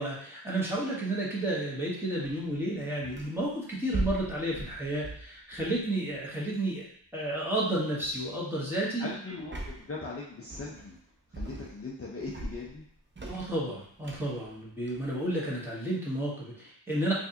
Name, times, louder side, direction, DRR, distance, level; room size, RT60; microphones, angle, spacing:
voice 1, 0.0-6.8 7.1-9.1 13.3-17.1, right 1 dB, 5° right, -7 dB, 1.2 m, -31 dB
sound 1, 2.2-3.5 3.9-6.3 7.3-7.6 8.0-8.3 9.4-10.0 10.5-11.0 11.3-11.9 12.2-15.8, right 2 dB, 25° right, 0.6 m, -40 dB
voice 2, 9.0-11.0 11.3-12.9, left 3 dB, 30° left, -5 dB, 0.6 m, -39 dB
4.5 x 2.6 x 2.8 m, 0.65 s
wide cardioid pair, 95°, 45 cm